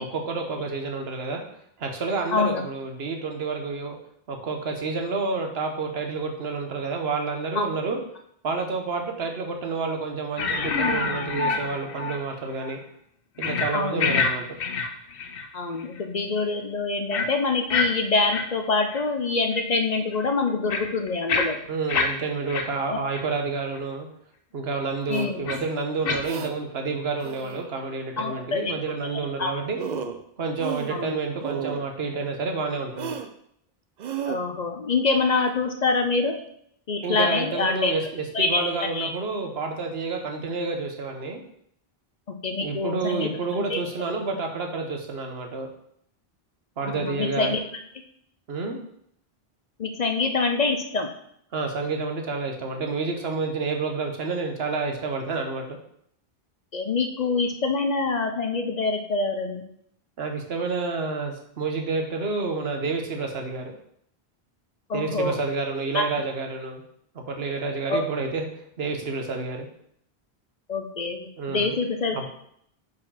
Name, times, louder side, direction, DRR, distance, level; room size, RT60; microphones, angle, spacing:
voice 1, 0.0-1.4 1.8-4.0 4.3-8.0 8.4-12.8 13.4-14.5 21.7-24.1 24.5-29.8 30.4-33.1 37.0-41.4 42.6-45.7 46.8-47.6 48.5-48.8 51.5-55.8 60.2-63.7 64.9-66.8 67.1-68.5 68.8-69.7 71.4-71.8 72.1-72.3, right 4 dB, 75° right, 3 dB, 1.2 m, -29 dB
voice 2, 2.3-2.6 13.7-14.1 15.5-21.6 22.9-23.0 25.1-25.4 28.2-28.7 29.0-29.5 30.9-31.2 34.3-36.4 36.9-37.9 38.3-38.7 38.9-39.1 42.4-43.3 43.7-43.8 46.8-47.6 49.8-51.1 56.7-59.6 64.9-65.4 65.9-66.0 67.9-68.0 70.7-72.3, left 3 dB, 50° left, 5 dB, 0.6 m, -25 dB
Creepy Guitar-Medium delay, 10.4-12.3 12.6-12.8 13.4-13.7 14.0-14.3 14.6-15.5 15.8-16.0 17.1-17.3 17.7-17.9 18.3-18.4 18.9-19.0 19.6-19.7 20.1-22.1 22.5-22.6 23.1-23.2 23.7-23.8 25.5-25.6 26.1-26.2, left 4 dB, 65° left, 0.9 m, -26 dB
sound 1, 25.1-25.3 26.2-26.5 27.2-27.7 29.4-29.5 29.8-30.2 30.6-31.1 31.4-31.8 33.0-33.3 34.0-34.4, right 7 dB, 55° right, 0.6 m, -33 dB
4.8 x 4.7 x 5.6 m, 0.70 s
omnidirectional pair, 1.0 m